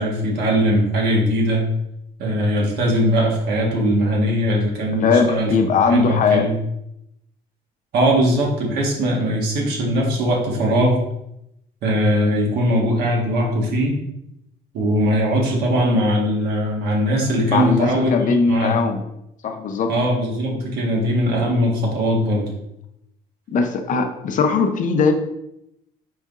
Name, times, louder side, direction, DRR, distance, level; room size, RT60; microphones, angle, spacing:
voice 1, 0.0-1.7 2.2-6.5 7.9-11.0 11.8-13.9 14.7-18.8 19.9-22.5, equal, 75° right, -1 dB, 1.4 m, -20 dB
voice 2, 4.9-6.4 9.1-9.2 17.5-19.0 19.4-19.9 21.4-21.5 23.5-25.1, left 5 dB, 50° left, 5 dB, 0.6 m, -19 dB
4.5 x 4.2 x 2.5 m, 0.81 s
cardioid pair, 110°, 17 cm